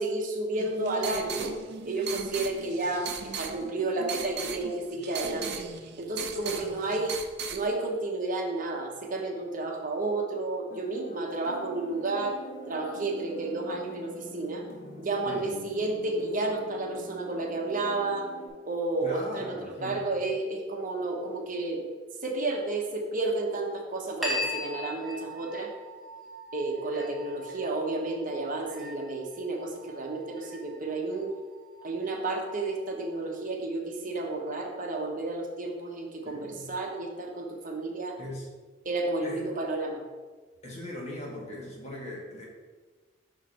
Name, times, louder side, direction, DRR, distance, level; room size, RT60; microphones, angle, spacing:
voice 1, 0.0-1.5 1.8-5.6 6.0-7.2 7.5-12.4 12.7-14.6 15.0-18.3 18.7-19.5 19.8-21.8 22.2-25.7 26.5-31.3 31.8-38.2 38.8-40.0, right 2 dB, 45° right, 1 dB, 1.1 m, -31 dB
sound 1, 0.5-7.6, right 6 dB, 60° right, 0.6 m, -38 dB
sound 2, 10.7-18.5, right 2 dB, 70° left, 2.0 m, -45 dB
voice 2, 19.0-20.2 36.3-36.7 38.2-38.5 39.2-39.5 40.6-42.4, left 1 dB, 35° left, -3 dB, 1.7 m, -40 dB
sound 3, 24.2-33.3, left 1 dB, ahead, 1.1 m, -40 dB
6.3 x 5.0 x 4.3 m, 1.4 s
head